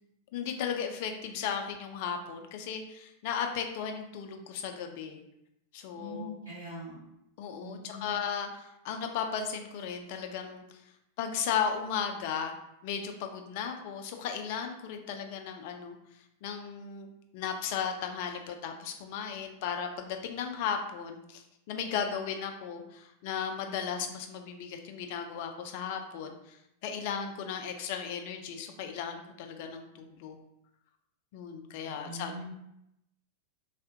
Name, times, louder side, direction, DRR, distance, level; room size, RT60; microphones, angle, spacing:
voice 1, 0.3-5.2 5.7-6.3 7.4-10.6 11.2-12.5 12.8-16.0 16.4-17.1 17.3-26.6 26.8-30.4 31.3-32.4, left 7 dB, 50° left, 4 dB, 0.4 m, -35 dB
voice 2, 5.9-7.0 7.6-8.1 31.8-32.5, equal, 65° right, -10 dB, 1.2 m, -42 dB
3.5 x 2.0 x 2.6 m, 0.83 s
figure-of-eight pair, 90°, 0 cm